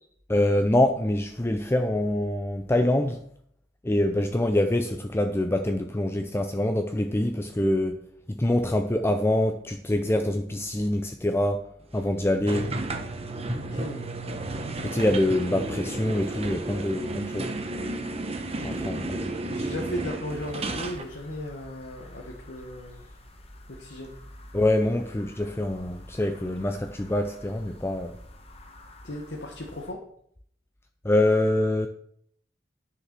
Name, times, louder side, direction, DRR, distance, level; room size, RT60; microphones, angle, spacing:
voice 1, 0.3-3.2 3.8-8.0 8.3-11.7 11.9-12.7 14.8-17.5 18.6-19.3 24.5-28.1 31.0-31.9, left 1 dB, 15° left, 0.5 m, -25 dB
sound 1, 12.5-21.0, right 2 dB, 35° right, 1.1 m, -32 dB
voice 2, 13.5-14.0 18.5-18.9 19.5-23.0 23.7-24.2 29.0-30.0, left 1 dB, 75° left, 1.4 m, -36 dB
sound 2, 20.3-29.9, left 1 dB, 35° left, 1.3 m, -48 dB
10.0 x 6.6 x 6.0 m
head